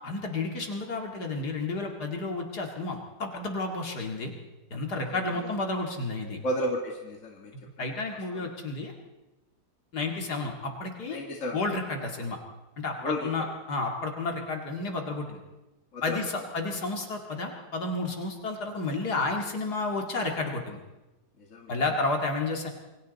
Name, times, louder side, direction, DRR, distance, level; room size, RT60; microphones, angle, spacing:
voice 1, 0.0-4.3 4.7-6.4 7.8-8.9 9.9-11.2 11.5-12.4 12.8-15.4 16.0-20.8 21.7-22.7, left 3 dB, 70° left, 2 dB, 2.7 m, -31 dB
voice 2, 6.4-7.5 8.3-8.5 11.1-11.6 13.0-13.3 15.9-16.2 16.6-16.7 21.4-21.7, equal, 45° left, 0 dB, 2.5 m, -32 dB
27.5 x 23.0 x 4.1 m, 1.1 s
omnidirectional pair, 1.8 m